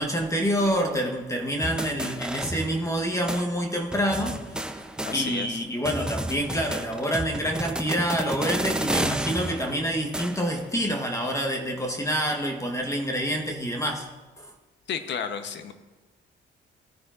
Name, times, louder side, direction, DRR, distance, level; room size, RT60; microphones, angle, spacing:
voice 1, 0.0-14.1 14.4-14.5, equal, 15° left, 2 dB, 1.2 m, -27 dB
sound 1, 1.6-3.0 3.3-3.4 3.9-5.6 5.8-10.6, right 1 dB, 5° right, 0.7 m, -31 dB
voice 2, 5.0-5.6 14.9-15.7, left 7 dB, 65° left, 9 dB, 1.0 m, -32 dB
18.0 x 9.6 x 2.5 m, 1.2 s
cardioid pair, 90°, 20 cm